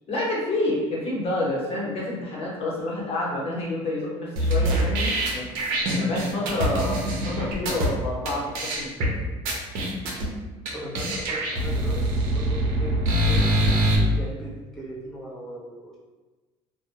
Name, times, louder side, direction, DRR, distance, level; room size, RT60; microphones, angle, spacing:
voice 1, 0.1-5.5 6.0-9.2, left 1 dB, 45° left, -5 dB, 0.9 m, -29 dB
sound 1, 4.4-7.9 8.3-8.4 8.5-9.1 9.5-10.3 10.7-10.8 10.9-14.0, right 1 dB, 75° right, 0.6 m, -24 dB
voice 2, 10.7-16.0, right 1 dB, 5° left, -8 dB, 0.7 m, -38 dB
2.2 x 2.1 x 2.8 m, 1.2 s
supercardioid pair, 95°, 14 cm